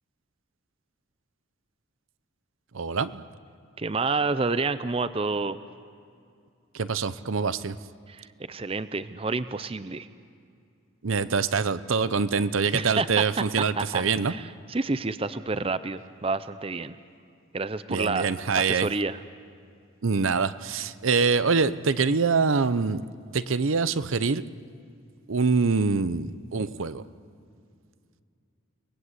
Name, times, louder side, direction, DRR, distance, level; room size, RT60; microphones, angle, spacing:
voice 1, 2.7-3.2 6.7-7.8 11.0-14.3 17.9-18.9 20.0-23.1 23.3-24.4 25.3-27.0, right 5 dB, 75° right, 14 dB, 0.7 m, -25 dB
voice 2, 3.8-5.6 8.1-10.1 12.7-13.2 13.8-17.0 17.5-18.3 18.5-19.2, right 3 dB, 25° right, 13 dB, 0.5 m, -29 dB
29.5 x 19.0 x 8.2 m, 2.4 s
head